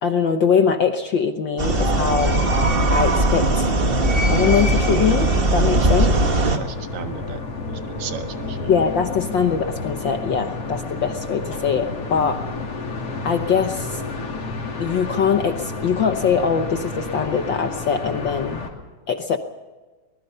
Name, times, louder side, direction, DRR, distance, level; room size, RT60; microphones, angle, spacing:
voice 1, 0.0-2.4 2.9-3.7 4.3-6.1 8.7-12.4 13.2-14.0 14.8-18.6 19.1-19.4, left 6 dB, 75° left, 7 dB, 1.0 m, -22 dB
sound 1, 1.6-6.6, right 2 dB, 45° right, 0.7 m, -19 dB
sound 2, 1.7-18.7, left 3 dB, 50° left, 3.8 m, -31 dB
voice 2, 5.7-6.1 6.4-7.4 7.7-8.7, right 7 dB, 70° right, 6 dB, 2.8 m, -35 dB
23.5 x 21.0 x 5.6 m, 1.3 s
omnidirectional pair, 3.5 m